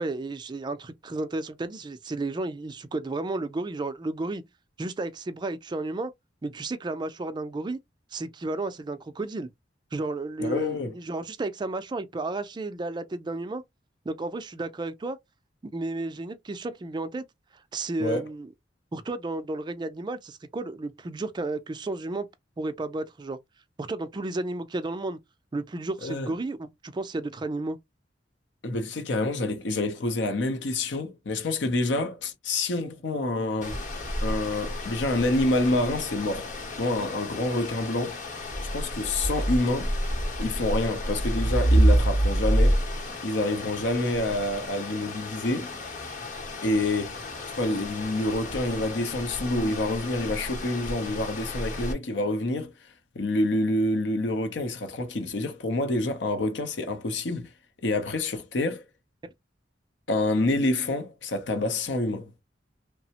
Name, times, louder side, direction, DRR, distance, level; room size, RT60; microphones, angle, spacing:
voice 1, 0.0-4.4 4.8-6.1 6.4-7.8 8.1-9.5 9.9-13.6 14.1-15.2 15.7-17.2 17.7-18.5 18.9-22.3 22.6-23.4 23.8-25.2 25.5-27.8, right 2 dB, 25° right, 0.3 m, -32 dB
voice 2, 10.4-11.0 18.0-18.2 26.0-26.3 28.6-33.8 34.2-38.2 38.7-39.9 40.4-42.9 43.2-45.7 46.6-47.2 47.6-52.7 53.2-57.5 57.8-58.8 60.1-62.3, left 2 dB, 75° left, 0.6 m, -27 dB
sound 1, 33.6-51.9, equal, 45° left, 0.9 m, -29 dB
3.2 x 2.0 x 2.8 m
head